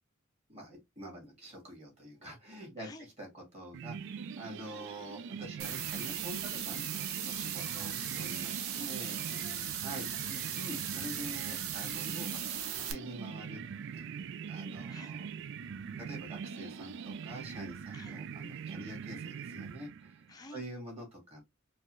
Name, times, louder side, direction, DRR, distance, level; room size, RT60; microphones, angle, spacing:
voice 1, 0.5-2.9 3.2-9.2 9.8-10.1 10.6-13.6 13.9-15.3 16.1-20.2 20.5-21.4, right 1 dB, 30° right, 2.0 m, -46 dB
voice 2, 2.8-3.1 4.6-4.8 7.6-7.9 8.9-10.5 14.9-15.2 17.9-18.2 20.3-20.7, left 2 dB, 20° left, 0.5 m, -53 dB
sound 1, 3.7-20.3, right 6 dB, 60° right, 0.3 m, -43 dB
sound 2, 5.6-12.9, right 9 dB, 85° right, 0.7 m, -38 dB
4.6 x 2.4 x 3.1 m
head